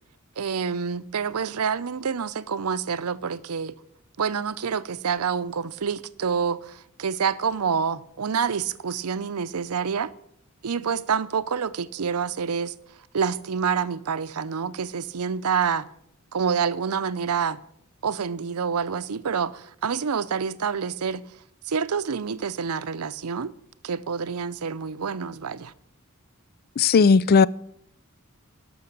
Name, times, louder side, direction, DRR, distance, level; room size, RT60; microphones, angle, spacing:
voice 1, 0.4-3.7 4.2-10.1 10.6-12.7 13.1-15.9 16.3-17.6 18.0-21.2 21.7-23.5 23.8-25.7, right 6 dB, 85° right, 0.6 m, -27 dB
voice 2, 26.8-27.5, left 5 dB, 45° left, 0.4 m, -16 dB
12.5 x 6.3 x 8.6 m
head